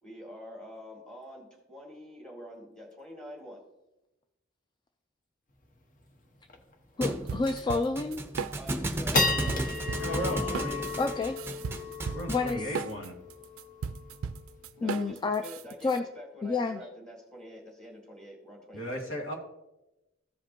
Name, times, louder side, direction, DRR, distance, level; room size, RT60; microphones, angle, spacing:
voice 1, 0.0-3.7 8.6-10.7 14.8-19.0, equal, 5° left, -1 dB, 1.9 m, -47 dB
sound 1, 5.6-5.7 6.0-6.1 6.5-6.7 7.2-7.3 7.9-8.2 8.7-15.2, left 3 dB, 40° left, 0.9 m, -34 dB
voice 2, 7.0-8.2 11.0-11.4 12.3-12.7 14.8-15.4 15.8-16.0 16.4-16.8, left 3 dB, 20° left, 7 dB, 0.3 m, -29 dB
Thump thud, 7.0-12.6, right 1 dB, 10° right, 0.6 m, -35 dB
sound 2, 7.3-9.0 9.2-16.0, right 6 dB, 75° right, 0.4 m, -37 dB
voice 3, 10.0-10.8 12.1-13.1 18.7-19.3, equal, 75° left, -1 dB, 2.2 m, -35 dB
14.5 x 5.1 x 2.9 m, 0.96 s
head